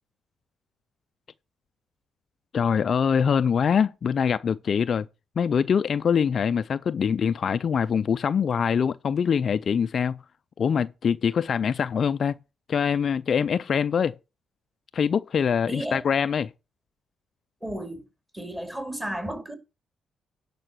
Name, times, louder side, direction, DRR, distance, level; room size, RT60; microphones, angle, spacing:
voice 1, 2.5-5.1 5.4-10.2 10.6-12.4 12.7-14.2 14.9-16.5, left 7 dB, 50° left, 0.4 m, -24 dB
voice 2, 15.7-16.0 17.6-18.0 18.3-19.5, right 1 dB, 10° right, 2.7 m, -33 dB
11.0 x 5.0 x 6.0 m
cardioid pair, 90°, 0 cm